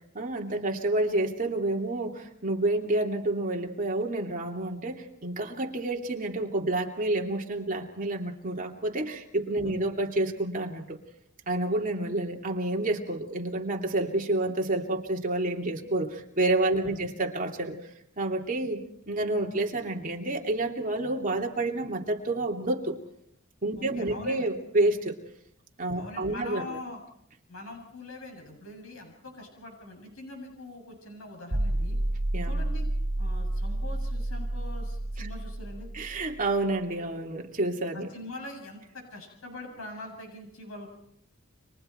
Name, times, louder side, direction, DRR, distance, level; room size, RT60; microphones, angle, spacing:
voice 1, 0.1-11.0 11.5-17.8 18.2-23.0 23.6-25.2 25.8-26.8 32.3-32.5 35.2-35.3 35.9-38.1, right 2 dB, 40° right, 1 dB, 2.9 m, -29 dB
voice 2, 23.8-24.5 26.0-27.0 27.5-32.0 32.4-32.8 33.2-35.9 38.1-40.9, left 2 dB, 75° left, 3 dB, 7.4 m, -43 dB
sound 1, 31.5-36.5, right 1 dB, 80° right, 2.3 m, -30 dB
30.0 x 25.5 x 4.6 m, 0.72 s
head